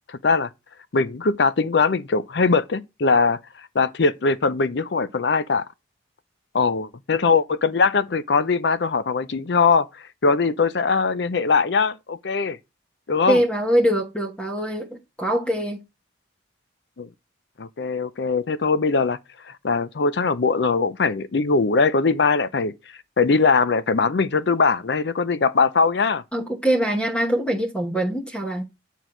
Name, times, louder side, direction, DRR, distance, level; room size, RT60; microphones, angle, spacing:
voice 1, 0.1-0.5 0.9-3.4 3.7-5.7 6.5-9.9 10.2-12.6 13.1-13.4 17.0-17.1 17.6-19.2 19.4-22.7 23.2-26.2, left 4 dB, 65° left, 0.5 m, -21 dB
voice 2, 13.3-14.9 15.2-15.8 26.3-28.6, right 1 dB, 5° left, 1.0 m, -23 dB
9.1 x 4.6 x 3.8 m
head